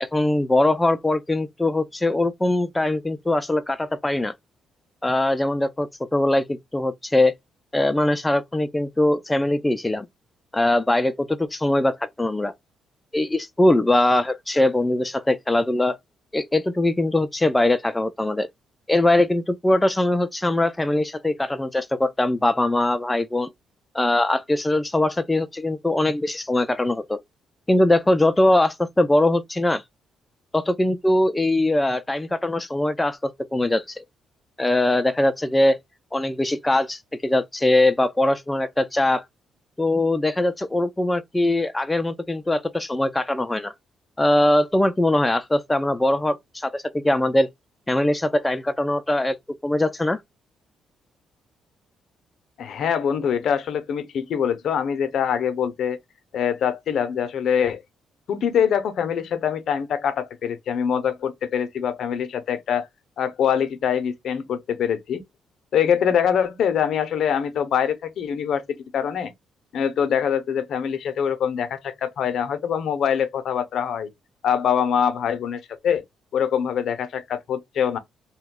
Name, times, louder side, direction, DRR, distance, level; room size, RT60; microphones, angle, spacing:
voice 1, 0.0-4.3 5.0-7.3 7.7-10.1 10.5-12.5 13.1-16.0 16.3-18.5 18.9-23.5 23.9-27.2 27.7-29.8 30.5-34.0 34.6-35.8 36.1-39.2 39.8-43.7 44.2-47.5 47.9-49.4 49.6-50.2, left 1 dB, 10° left, 0.4 m, -21 dB
voice 2, 52.6-56.0 56.3-57.8 58.3-62.9 63.2-65.2 65.7-69.3 69.7-74.1 74.4-76.0 76.3-78.0, left 8 dB, 65° left, 0.6 m, -24 dB
2.9 x 2.2 x 3.5 m
cardioid pair, 90°, 0 cm